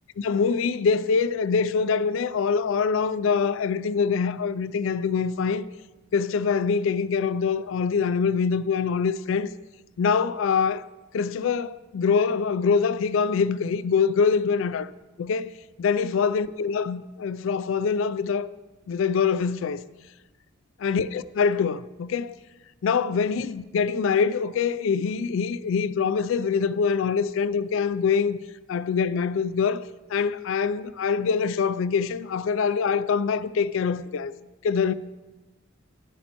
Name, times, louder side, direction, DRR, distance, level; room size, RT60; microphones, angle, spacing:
voice 1, 0.2-5.7 6.1-9.5 10.0-10.8 11.1-14.9 15.2-15.5 15.8-18.5 18.9-19.8 20.8-22.4 22.8-28.4 28.7-34.3 34.6-34.9, left 5 dB, 65° left, 0.3 m, -24 dB
10.5 x 9.9 x 2.9 m
head